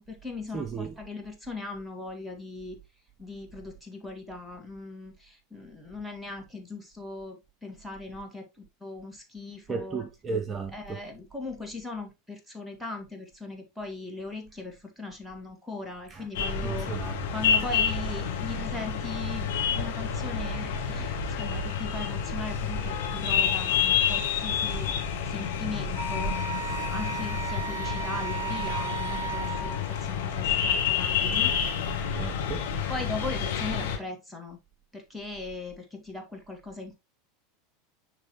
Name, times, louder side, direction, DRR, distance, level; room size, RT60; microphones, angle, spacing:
voice 1, 0.0-2.8 3.2-10.0 10.7-16.9 17.3-31.5 32.9-34.6 34.9-36.9, left 3 dB, ahead, 1.8 m, -39 dB
voice 2, 0.5-0.9 9.7-11.0 16.1-16.3 16.6-17.3 32.0-32.7, right 5 dB, 25° right, 0.6 m, -34 dB
sound 1, 16.3-34.0, left 6 dB, 60° left, 1.3 m, -29 dB
Wind instrument woodwind instrument, 26.0-29.8, right 5 dB, 60° right, 0.7 m, -35 dB
9.8 x 3.3 x 2.9 m
figure-of-eight pair, 80°, 0 cm